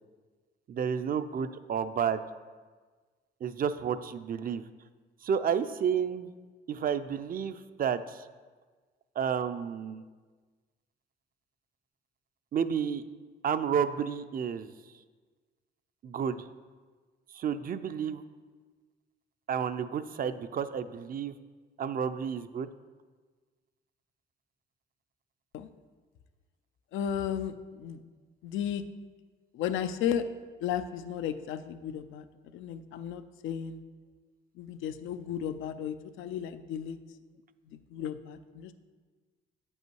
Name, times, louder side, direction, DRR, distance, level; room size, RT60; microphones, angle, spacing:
voice 1, 0.7-2.3 3.4-4.6 5.2-6.3 6.7-8.3 9.2-10.0 12.5-13.0 13.4-14.7 16.0-16.5 17.3-18.2 19.5-21.3 21.8-22.7, right 7 dB, 45° right, 12 dB, 0.4 m, -31 dB
voice 2, 26.9-28.0 28.4-28.8 29.5-30.2 30.6-32.3 32.5-33.8 34.6-37.0 37.7-38.7, left 9 dB, 85° left, 11 dB, 0.5 m, -34 dB
8.1 x 5.5 x 4.6 m, 1.4 s
cardioid pair, 90°, 20 cm